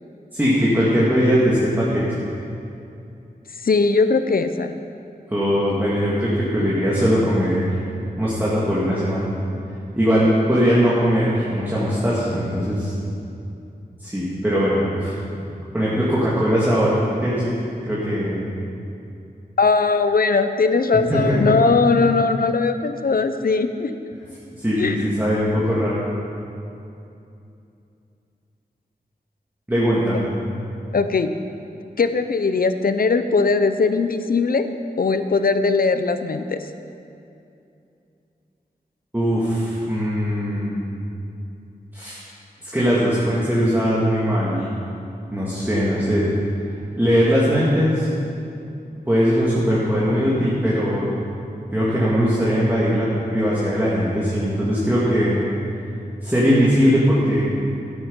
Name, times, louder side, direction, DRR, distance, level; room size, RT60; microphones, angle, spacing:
voice 1, 0.3-2.2 5.3-7.7 8.2-9.2 9.9-12.9 14.0-15.2 15.7-16.9 17.2-17.5 17.8-18.4 21.1-21.5 24.6-26.1 29.7-30.3 39.1-40.8 41.9-42.2 42.6-44.6 45.3-46.3 46.9-48.1 49.1-51.1 51.7-55.5 56.2-57.4, equal, 10° right, -8 dB, 2.4 m, -20 dB
voice 2, 3.6-4.7 19.6-23.9 24.8-25.0 30.9-31.3 32.0-34.7 35.0-36.6, left 4 dB, 65° left, 9 dB, 0.7 m, -19 dB
13.0 x 11.0 x 5.5 m, 2.7 s
wide cardioid pair, 85°, 16 cm